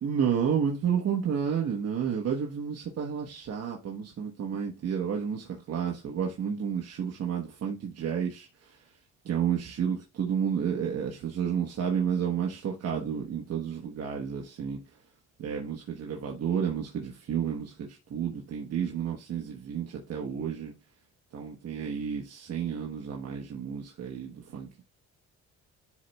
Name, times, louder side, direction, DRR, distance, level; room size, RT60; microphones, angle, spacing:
voice 1, 0.0-8.8 9.2-14.8 15.4-20.7 21.3-24.8, right 7 dB, 55° right, 1.1 m, -31 dB
11.0 x 4.0 x 2.3 m
cardioid pair, 90°, 30 cm